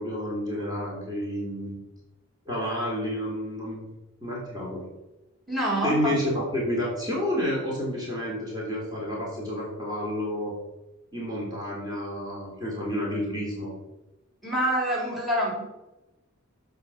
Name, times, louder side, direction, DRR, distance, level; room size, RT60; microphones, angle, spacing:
voice 1, 0.0-1.8 2.5-3.9 4.2-4.8 5.8-10.5 11.1-13.7, equal, 20° right, -5 dB, 3.1 m, -30 dB
voice 2, 5.5-6.1 14.4-15.6, equal, ahead, -2 dB, 3.8 m, -26 dB
15.0 x 5.3 x 6.3 m, 1.0 s
head